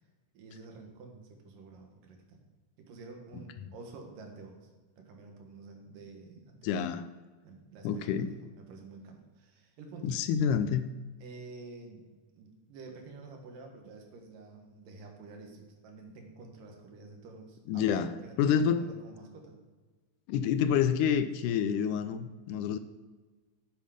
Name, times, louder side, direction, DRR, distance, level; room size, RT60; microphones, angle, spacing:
voice 1, 0.3-2.5 2.8-4.7 5.0-6.7 7.4-10.1 11.2-12.1 12.3-19.6, right 3 dB, 85° right, 2 dB, 3.2 m, -49 dB
voice 2, 6.6-7.0 7.8-8.3 10.0-10.9 17.7-18.1 18.4-18.9 20.3-22.8, left 8 dB, 80° left, 11 dB, 2.0 m, -28 dB
9.3 x 7.5 x 5.1 m, 1.3 s
omnidirectional pair, 3.7 m